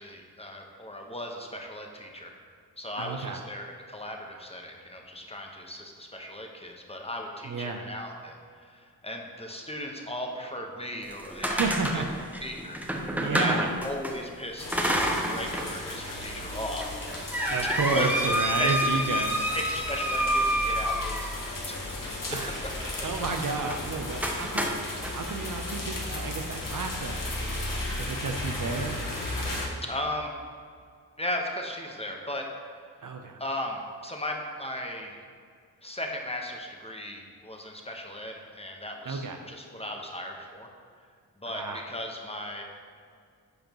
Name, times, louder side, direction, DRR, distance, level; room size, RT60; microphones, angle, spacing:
voice 1, 0.0-2.3 2.8-11.6 11.9-12.0 12.4-12.8 13.2-13.5 13.8-18.1 18.6-18.7 19.1-19.2 19.5-22.3 24.4-24.5 29.8-30.3 31.2-32.4 33.4-35.2 35.8-40.7 41.4-42.6, left 1 dB, 15° left, 1 dB, 1.2 m, -36 dB
voice 2, 3.0-3.5 7.4-7.8 11.5-12.4 13.2-13.7 17.5-19.3 22.3-22.5 23.0-24.7 25.1-27.3 28.0-28.9 33.0-33.4 39.0-39.4 41.5-41.9, right 4 dB, 55° right, 4 dB, 0.7 m, -31 dB
sound 1, 11.0-14.1 14.7-15.7 16.1-16.2 16.8-21.5 23.6-23.8 24.2-25.1, equal, 5° right, 1.1 m, -28 dB
sound 2, 14.6-29.7, left 1 dB, 55° left, 1.6 m, -35 dB
9.5 x 5.1 x 3.0 m, 2.2 s
supercardioid pair, 40°, 40 cm